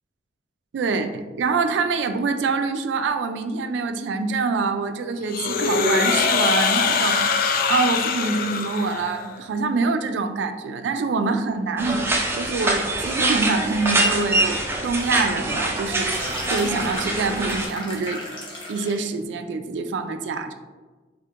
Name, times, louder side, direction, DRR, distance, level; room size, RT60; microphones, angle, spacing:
voice 1, 0.7-18.2 18.7-20.5, right 4 dB, 85° right, 8 dB, 0.3 m, -25 dB
sound 1, 5.3-9.4, left 5 dB, 55° left, 0.3 m, -22 dB
sound 2, 11.8-17.7, right 2 dB, 15° right, 0.4 m, -24 dB
sound 3, 15.8-19.1, left 1 dB, 30° left, 0.8 m, -35 dB
4.4 x 2.6 x 2.4 m, 1.3 s
head